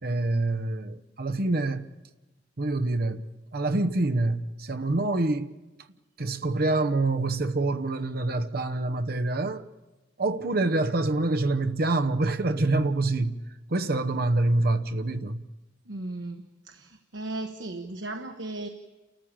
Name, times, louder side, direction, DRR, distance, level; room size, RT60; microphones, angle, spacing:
voice 1, 0.0-1.9 2.6-5.6 6.2-9.7 10.2-13.4 13.7-15.5, right 2 dB, 55° right, 0.9 m, -26 dB
voice 2, 15.9-18.7, right 2 dB, 85° right, 1.2 m, -36 dB
29.5 x 14.0 x 8.8 m
head